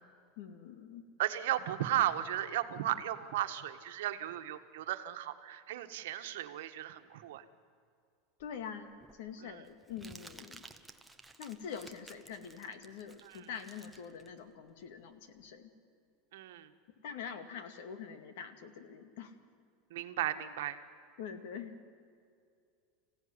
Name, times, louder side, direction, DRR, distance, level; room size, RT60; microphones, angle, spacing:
voice 1, 0.4-1.0 8.4-10.6 11.4-15.7 17.0-19.3 20.4-20.5 21.2-21.8, left 7 dB, 65° left, 9 dB, 2.2 m, -45 dB
voice 2, 1.2-7.4 9.4-9.6 13.2-13.5 16.3-16.7 19.9-20.8, right 13 dB, 80° right, 8 dB, 1.5 m, -35 dB
Crumpling crinkling, 8.4-15.5, right 2 dB, 5° right, 0.8 m, -56 dB
26.5 x 16.0 x 9.8 m, 2.3 s
supercardioid pair, 170°, 0 cm